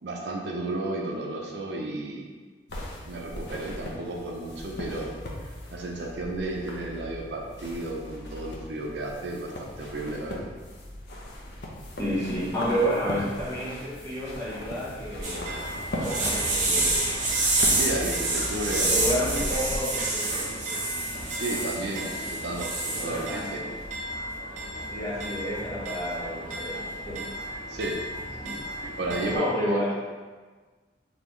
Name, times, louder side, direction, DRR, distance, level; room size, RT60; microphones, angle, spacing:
voice 1, 0.0-2.3 3.1-5.1 5.4-10.5 17.7-18.9 19.2-19.7 21.3-23.6 27.7-28.0 28.8-30.0, right 2 dB, 75° right, 0 dB, 0.6 m, -33 dB
sound 1, 2.7-19.8, left 1 dB, 70° left, 0.7 m, -38 dB
voice 2, 12.0-15.5 15.9-17.1 18.9-21.4 22.0-22.1 22.9-23.7 24.9-27.4 28.4-28.6 29.3-29.9, equal, 20° left, -9 dB, 1.2 m, -31 dB
sound 2, 15.2-29.3, right 2 dB, 45° right, 0.8 m, -29 dB
4.1 x 3.3 x 3.0 m, 1.4 s
head